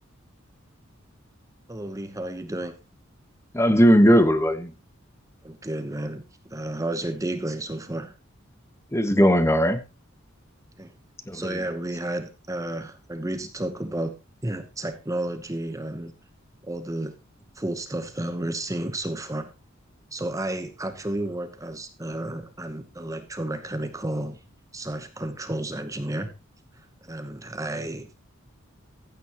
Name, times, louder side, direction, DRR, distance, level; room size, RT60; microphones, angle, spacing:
voice 1, 1.7-2.8 5.4-8.1 10.8-10.9 11.3-14.1 14.4-16.1 16.6-17.1 17.5-19.5 20.1-24.4 24.7-26.3 26.7-28.2, right 1 dB, 15° right, 1.0 m, -32 dB
voice 2, 3.5-4.7 8.9-9.8 11.3-11.6, equal, 15° left, 1.2 m, -18 dB
15.0 x 9.2 x 3.0 m
head